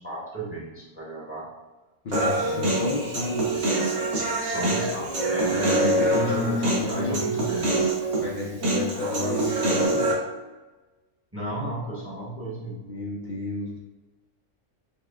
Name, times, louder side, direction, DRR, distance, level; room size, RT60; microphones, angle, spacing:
voice 1, 0.0-1.5 2.4-2.8 4.4-8.0 11.3-12.8, right 1 dB, 15° right, -6 dB, 0.7 m, -33 dB
voice 2, 2.0-3.6 5.5-7.2 8.2-10.1 12.9-13.8, left 3 dB, 65° left, -2 dB, 0.4 m, -32 dB
Human voice, 2.1-10.1, right 1 dB, 60° right, 1.1 m, -25 dB
5.6 x 2.2 x 2.2 m, 1.2 s
omnidirectional pair, 1.3 m